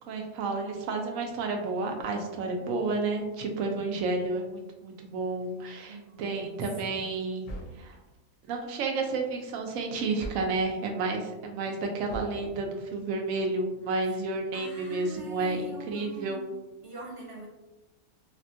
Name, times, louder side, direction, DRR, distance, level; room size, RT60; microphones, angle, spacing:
voice 1, 0.1-7.5 7.8-8.0 8.5-16.4, right 3 dB, 70° right, 2 dB, 0.9 m, -31 dB
voice 2, 5.9-7.0 14.0-14.2 14.5-17.5, right 3 dB, 35° right, -5 dB, 0.5 m, -44 dB
sound 1, 7.4-8.0 10.2-10.7 12.1-12.5, equal, 70° left, 0.9 m, -40 dB
3.5 x 2.2 x 2.6 m, 1.0 s
omnidirectional pair, 1.5 m